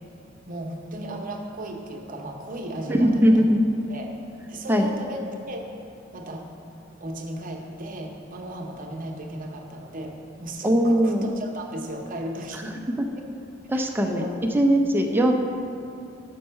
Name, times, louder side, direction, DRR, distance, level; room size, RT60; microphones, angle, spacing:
voice 1, 0.5-3.5 3.9-4.1 4.5-5.6 6.1-6.5 7.0-12.8 13.2-13.3 13.7-14.3 15.1-15.2, right 1 dB, 45° right, 1 dB, 0.8 m, -36 dB
voice 2, 2.9-3.6 4.7-4.9 10.6-11.3 13.7-14.3 14.5-15.3, equal, 10° right, 2 dB, 0.5 m, -20 dB
6.5 x 5.4 x 5.6 m, 2.6 s
head